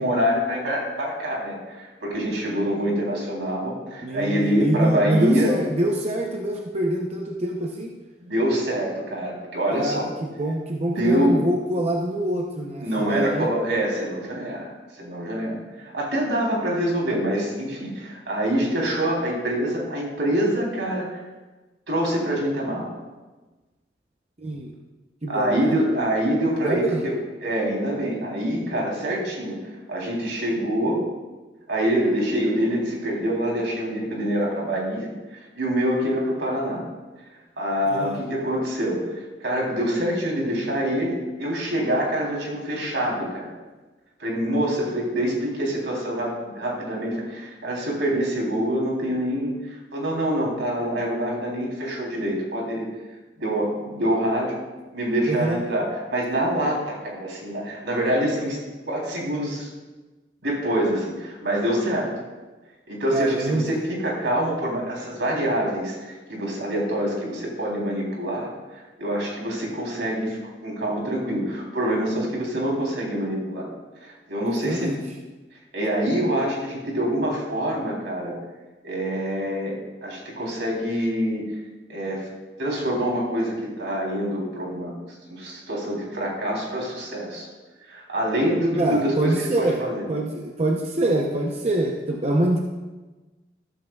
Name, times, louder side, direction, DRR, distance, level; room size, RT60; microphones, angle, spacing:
voice 1, 0.0-5.6 8.2-10.1 10.9-11.5 12.8-21.2 21.9-23.0 25.3-29.6 29.9-31.0 31.7-36.8 37.6-43.5 44.2-52.9 53.4-54.6 54.9-58.6 58.9-59.7 60.4-62.1 62.9-73.7 74.0-74.9 75.7-78.3 78.8-81.6 81.9-82.3 82.6-84.9 85.3-87.5 87.9-90.0, equal, 85° right, -2 dB, 3.5 m, -25 dB
voice 2, 4.0-7.9 9.7-13.5 24.4-24.7 25.2-25.8 26.5-27.0 37.9-38.2 55.2-55.6 63.1-63.7 74.4-75.0 88.8-89.8 90.1-92.6, right 1 dB, 35° right, 1 dB, 0.7 m, -25 dB
13.5 x 13.0 x 2.4 m, 1.2 s
head